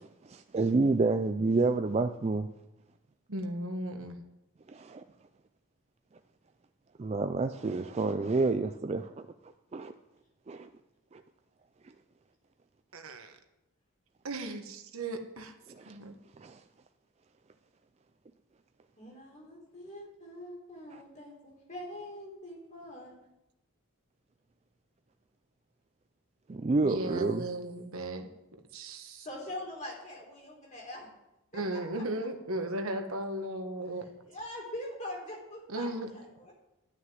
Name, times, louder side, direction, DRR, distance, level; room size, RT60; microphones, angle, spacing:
voice 1, 0.3-2.5 4.7-5.0 7.0-9.1 9.7-9.9 10.5-10.7 11.1-11.2 15.8-16.0 16.4-16.6 26.5-27.4, right 3 dB, 30° right, 7 dB, 0.4 m, -29 dB
voice 2, 3.3-4.2 12.9-13.4 14.2-15.5 15.8-16.1 26.8-29.3 31.5-34.1 35.7-36.1, right 1 dB, 70° right, 5 dB, 1.4 m, -36 dB
voice 3, 19.0-23.1 29.2-31.1 31.5-32.0 34.3-36.5, left 1 dB, 35° left, -2 dB, 3.4 m, -43 dB
11.5 x 6.5 x 9.2 m, 0.94 s
head